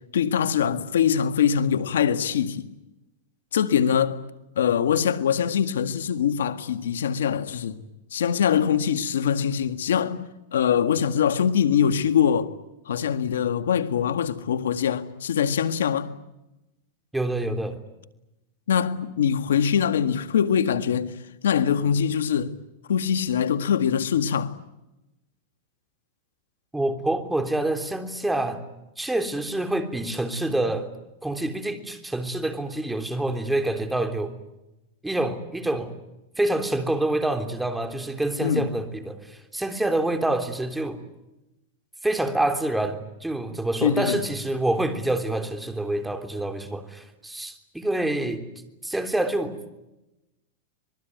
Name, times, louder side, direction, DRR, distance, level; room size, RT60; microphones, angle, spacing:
voice 1, 0.1-2.7 3.5-4.2 4.5-7.8 8.1-12.5 12.9-16.1 18.7-21.2 21.4-22.5 22.9-24.5 38.4-38.7 43.8-44.2, left 8 dB, 85° left, 1.8 m, -23 dB
voice 2, 17.1-17.8 26.7-28.6 29.0-30.9 31.2-34.3 35.0-35.9 36.4-41.0 42.0-48.4 48.8-49.5, right 1 dB, 5° right, 3.4 m, -27 dB
26.0 x 21.5 x 9.4 m
hypercardioid pair, 125°, 0 cm